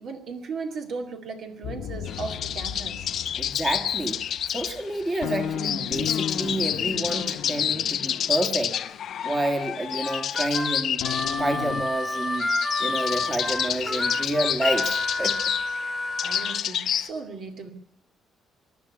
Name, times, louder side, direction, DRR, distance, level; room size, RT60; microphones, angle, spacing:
voice 1, 0.0-3.1 16.2-17.7, right 4 dB, 55° right, 5 dB, 2.3 m, -36 dB
sound 1, 1.6-9.9 11.0-11.8, left 9 dB, 75° left, 1.3 m, -35 dB
sound 2, 2.1-17.1, left 9 dB, 55° left, 0.7 m, -29 dB
voice 2, 3.4-4.2 4.5-8.7 9.2-11.0 11.4-12.5 12.8-15.4, right 1 dB, 20° right, 4 dB, 2.0 m, -29 dB
Harmonica, 10.0-16.6, left 2 dB, 5° left, 1.0 m, -29 dB
23.0 x 11.5 x 9.8 m, 0.70 s
cardioid pair, 150°, 0 cm